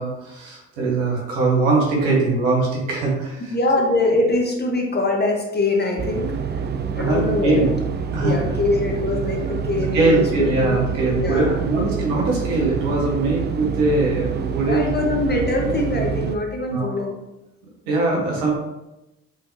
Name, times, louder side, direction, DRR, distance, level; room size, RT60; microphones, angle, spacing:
voice 1, 0.0-3.4 6.9-7.7 8.1-8.4 9.9-15.0 16.7-16.9 17.9-18.5, right 3 dB, 80° right, -2 dB, 1.2 m, -21 dB
voice 2, 3.5-6.3 6.9-7.6 8.2-10.8 11.1-11.6 14.7-17.1, left 2 dB, 25° left, 1 dB, 1.2 m, -23 dB
sound 1, 6.0-16.4, right 6 dB, 30° right, 0.4 m, -27 dB
5.1 x 3.5 x 2.7 m, 0.96 s
hypercardioid pair, 45°, 37 cm